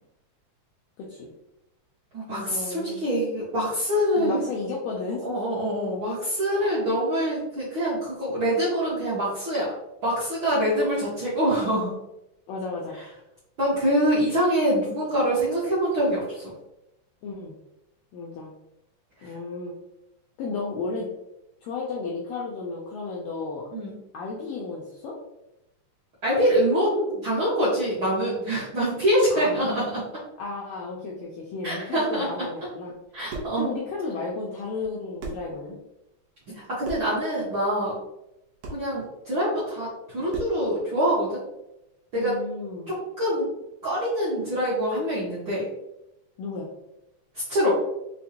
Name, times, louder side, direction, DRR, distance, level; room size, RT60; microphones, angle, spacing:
voice 1, 1.0-1.3 2.3-3.0 4.2-5.4 12.5-13.0 17.2-17.5 18.1-18.5 19.2-19.7 20.4-21.1 21.6-23.6 24.1-25.1 29.3-29.6 30.4-32.9 33.6-35.8 42.1-42.9 46.4-46.7, left 3 dB, 80° left, -3 dB, 1.5 m, -33 dB
voice 2, 2.1-4.4 5.2-9.7 10.0-11.9 13.6-16.4 19.2-19.3 23.7-24.0 26.2-30.0 31.6-32.3 33.1-33.7 36.5-37.9 38.7-41.4 42.1-42.4 42.9-43.5 43.8-45.7 47.3-47.7, equal, 65° right, -10 dB, 1.2 m, -25 dB
sound 1, 33.0-33.6 34.8-34.9 35.2-35.5 36.8-37.2 38.6-38.9 40.3-40.7, right 2 dB, 80° right, 1.2 m, -35 dB
5.2 x 2.1 x 2.8 m, 0.89 s
omnidirectional pair, 3.5 m